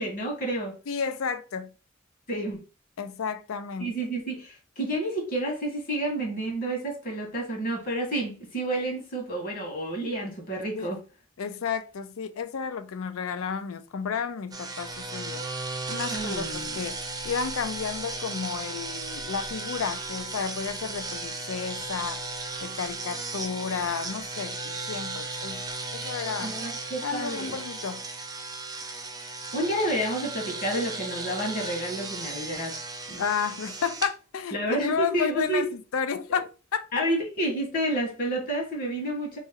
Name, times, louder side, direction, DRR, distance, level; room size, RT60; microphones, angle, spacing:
voice 1, 0.0-0.7 2.3-2.6 3.8-11.0 16.1-16.8 26.4-27.6 29.5-32.8 33.1-33.2 34.5-35.7 36.9-39.4, right 1 dB, 45° left, 1.5 m, -30 dB
voice 2, 0.9-1.7 3.0-3.9 10.8-10.9 11.4-17.0 17.2-22.2 22.6-25.6 25.9-26.6 27.0-28.0 33.2-36.9, left 6 dB, 85° left, 0.4 m, -32 dB
sound 1, 14.5-34.1, right 3 dB, 20° right, 0.5 m, -35 dB
3.1 x 3.0 x 3.7 m
head